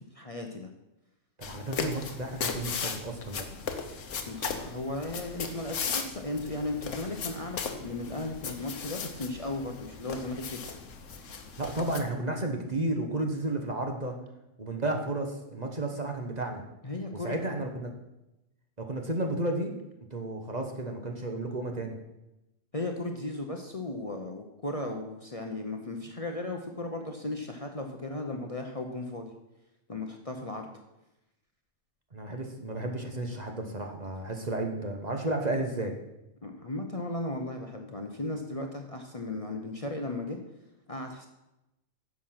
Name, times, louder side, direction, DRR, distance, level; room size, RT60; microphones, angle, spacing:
voice 1, 0.1-0.7 4.3-10.7 16.8-17.4 22.7-29.3 29.9-30.7 36.4-40.4 40.9-41.3, left 2 dB, 30° left, 3 dB, 0.9 m, -36 dB
sound 1, 1.4-12.0, left 6 dB, 75° left, 1.4 m, -37 dB
voice 2, 1.4-3.5 11.6-14.2 14.6-16.6 17.2-17.9 18.8-19.7 20.1-22.0 32.1-35.9, right 2 dB, 35° right, 3 dB, 1.2 m, -32 dB
10.5 x 7.2 x 5.8 m, 0.92 s
omnidirectional pair, 1.3 m